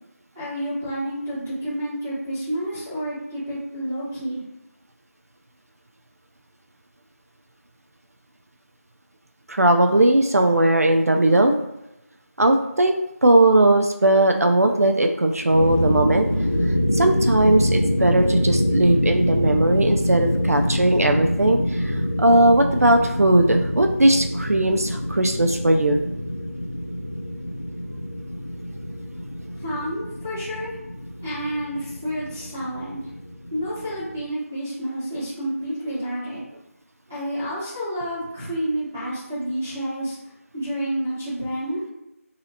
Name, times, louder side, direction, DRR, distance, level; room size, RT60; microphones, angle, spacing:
voice 1, 0.3-4.4 29.6-30.7 31.2-33.1 33.5-36.4 37.1-40.2 40.5-41.8, equal, 10° right, -14 dB, 0.9 m, -29 dB
voice 2, 9.5-11.6 12.4-12.9 13.2-16.3 16.9-26.0, right 1 dB, 70° right, 4 dB, 0.4 m, -18 dB
sound 1, 15.4-34.2, equal, 45° left, 0.5 m, -25 dB
3.1 x 2.7 x 2.7 m, 0.89 s
figure-of-eight pair, 175°, 8 cm